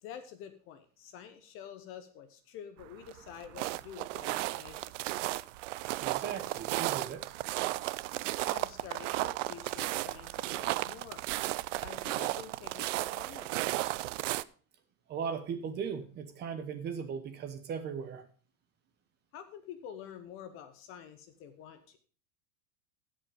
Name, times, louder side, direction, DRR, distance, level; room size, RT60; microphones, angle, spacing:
voice 1, 0.0-4.9 8.4-11.2 11.8-13.5 19.3-22.0, left 9 dB, 30° left, 9 dB, 0.8 m, -48 dB
sound 1, 2.8-14.4, right 17 dB, 60° right, 0.5 m, -34 dB
voice 2, 6.0-7.2 15.1-18.2, right 6 dB, 25° right, 8 dB, 1.1 m, -38 dB
16.0 x 5.4 x 5.0 m, 0.41 s
supercardioid pair, 155°, 44 cm